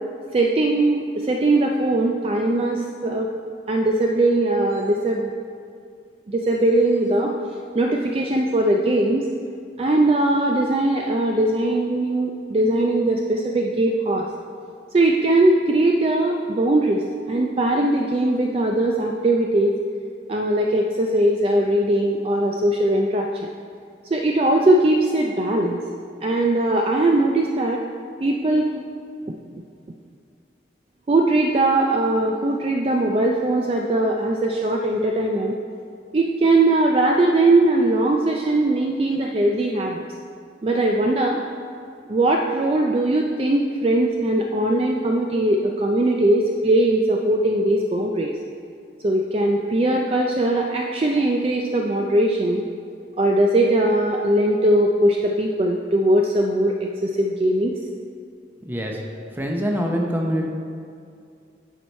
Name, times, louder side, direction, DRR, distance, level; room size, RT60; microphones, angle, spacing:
voice 1, 0.3-3.3 3.7-5.3 6.3-9.3 9.8-14.3 14.9-19.7 20.3-23.5 24.1-25.8 26.2-27.8 28.2-28.7 31.1-35.6 36.1-40.0 40.6-41.4 42.1-48.3 49.0-52.7 53.2-57.7, right 1 dB, 30° right, 1 dB, 0.3 m, -20 dB
voice 2, 58.7-59.0 59.3-60.5, equal, 10° right, 0 dB, 0.7 m, -24 dB
10.0 x 4.7 x 4.2 m, 2.3 s
head